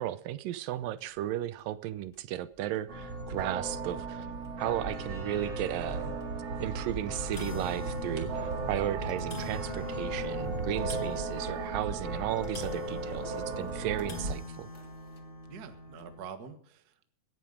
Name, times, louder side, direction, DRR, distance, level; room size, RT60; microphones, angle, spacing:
voice 1, 0.0-4.3 4.6-6.1 6.6-14.7, right 13 dB, 85° right, 2.4 m, -35 dB
sound 1, 1.0-1.2 1.6-1.7 2.1-2.2 3.3-3.4 3.9-4.0 4.4-4.5 5.1-5.2 6.2-6.4 6.8-6.9 7.1-16.2, left 2 dB, 30° left, 0.9 m, -44 dB
sound 2, 2.9-14.3, right 3 dB, 40° right, 2.4 m, -36 dB
voice 2, 15.4-17.0, right 7 dB, 60° right, 1.0 m, -46 dB
17.5 x 11.0 x 5.1 m
omnidirectional pair, 3.9 m